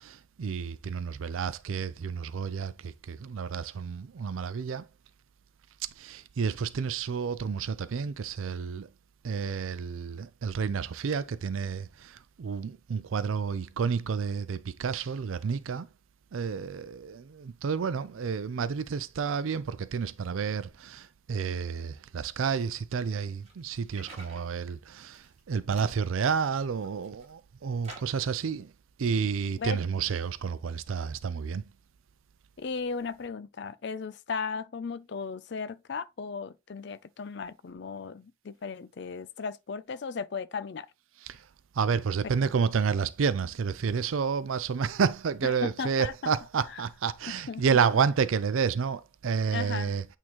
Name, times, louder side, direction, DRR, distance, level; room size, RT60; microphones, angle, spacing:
voice 1, 0.4-2.7 3.1-4.8 6.0-8.9 9.2-11.8 12.4-15.9 16.3-21.0 21.3-25.1 25.5-28.7 29.0-31.6 41.8-50.0, right 6 dB, 80° right, 0.4 m, -30 dB
sound 1, 23.4-24.5 25.0-25.4 25.7-25.9 26.5-27.3 27.8-28.3, right 2 dB, 30° right, 2.0 m, -49 dB
voice 2, 32.6-40.9 42.4-42.5 45.4-46.3 47.3-47.6 49.5-49.9, left 5 dB, 55° left, 0.4 m, -36 dB
8.6 x 3.7 x 3.0 m
head